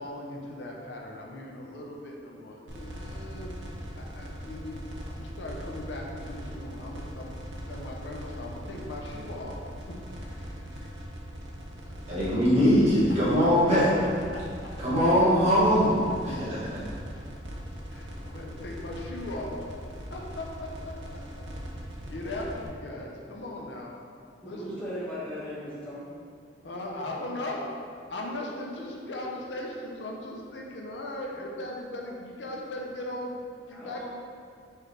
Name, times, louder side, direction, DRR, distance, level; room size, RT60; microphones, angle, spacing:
voice 1, 0.0-3.5 3.9-9.6 9.9-10.9 11.8-12.4 14.3-14.4 17.9-19.7 20.1-21.4 21.8-24.0 24.4-24.8 26.6-27.7 28.1-33.4 33.7-34.1, left 1 dB, 70° left, -1 dB, 0.5 m, -39 dB
sound 1, 2.7-22.7, equal, 70° right, 0.6 m, -40 dB
voice 2, 12.1-13.9 14.8-16.0 16.2-16.8, equal, 35° right, -10 dB, 1.5 m, -22 dB
voice 3, 24.4-26.1 33.7-34.1, equal, 5° left, -9 dB, 0.7 m, -37 dB
4.7 x 3.0 x 3.2 m, 2.3 s
head